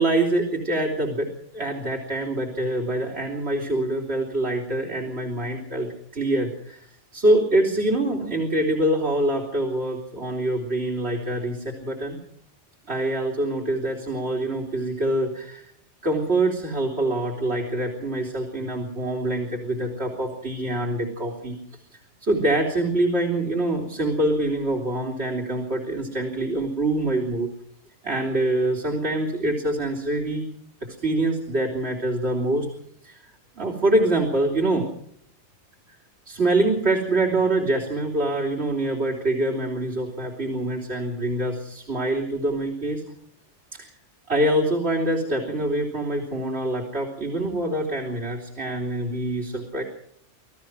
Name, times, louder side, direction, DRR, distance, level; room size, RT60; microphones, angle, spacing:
voice 1, 0.0-6.9 7.1-12.2 12.9-15.7 16.0-21.6 22.2-27.5 28.0-30.4 31.0-32.7 33.0-33.3 33.6-34.9 36.3-43.0 43.7-43.9 44.3-49.8, right 1 dB, 65° right, -1 dB, 3.8 m, -25 dB
27.0 x 17.5 x 6.3 m, 0.69 s
omnidirectional pair, 1.2 m